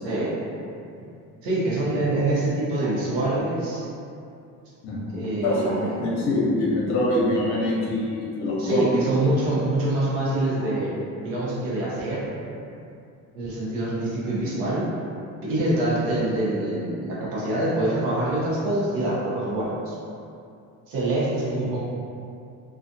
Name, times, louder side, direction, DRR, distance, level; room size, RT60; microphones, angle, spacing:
voice 1, 1.4-3.8 5.1-6.1 8.6-11.0 11.2-12.3 13.3-14.9 15.4-19.9 20.9-21.8, right 1 dB, 90° right, -7 dB, 0.8 m, -25 dB
voice 2, 4.8-8.9 10.6-10.7, left 2 dB, 55° left, -5 dB, 0.7 m, -25 dB
2.4 x 2.3 x 2.6 m, 2.6 s
cardioid pair, 150°, 34 cm